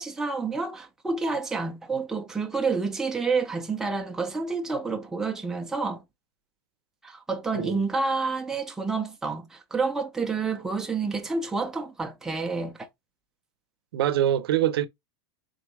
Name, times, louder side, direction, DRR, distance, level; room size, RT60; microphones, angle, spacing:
voice 1, 0.0-6.0 7.0-12.8, right 4 dB, 5° right, 0.5 m, -29 dB
voice 2, 13.9-14.9, right 12 dB, 85° right, 0.6 m, -24 dB
3.9 x 3.5 x 3.2 m
supercardioid pair, 165°, 12 cm